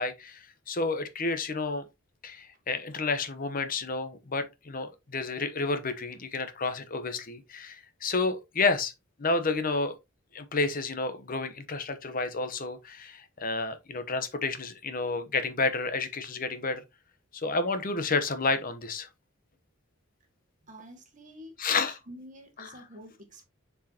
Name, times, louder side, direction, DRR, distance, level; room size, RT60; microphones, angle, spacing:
voice 1, 0.0-1.8 2.2-8.9 9.2-10.0 10.3-16.8 17.3-19.1 21.6-22.0 22.6-22.8, left 3 dB, 45° left, 0.9 m, -30 dB
voice 2, 20.6-23.4, equal, 40° right, 1.8 m, -48 dB
7.4 x 4.6 x 2.8 m
head